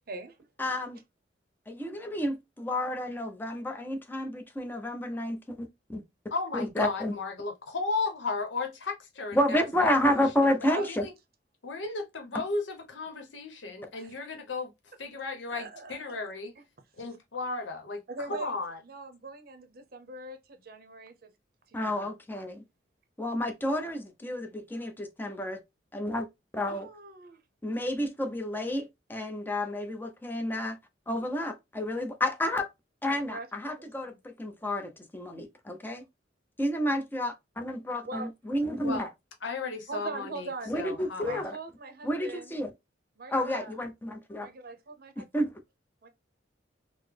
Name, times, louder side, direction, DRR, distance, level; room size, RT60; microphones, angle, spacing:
voice 1, 0.1-0.4 10.7-10.9 14.0-14.1 15.5-16.6 18.1-18.6 18.8-21.3 21.7-22.2 26.6-27.4 33.3-33.5 33.8-34.2 38.1-38.3 39.9-40.9 41.2-42.6 43.2-43.7 44.3-45.3 46.0-46.1, right 3 dB, 55° right, 0.6 m, -42 dB
voice 2, 0.6-1.0 1.7-6.0 6.5-7.1 9.3-11.0 21.7-22.6 23.2-25.6 25.9-26.3 26.5-26.9 27.6-30.8 31.1-32.7 33.0-36.0 36.6-39.1 40.7-41.5 42.0-42.7 43.3-44.5 45.3-45.5, left 1 dB, 10° left, 0.5 m, -30 dB
voice 3, 6.3-9.9 10.9-11.1 11.6-14.7 15.0-16.5 17.0-18.0 18.3-18.8 38.8-39.1 39.4-41.4, left 3 dB, 85° left, 0.8 m, -34 dB
3.9 x 2.0 x 3.3 m
head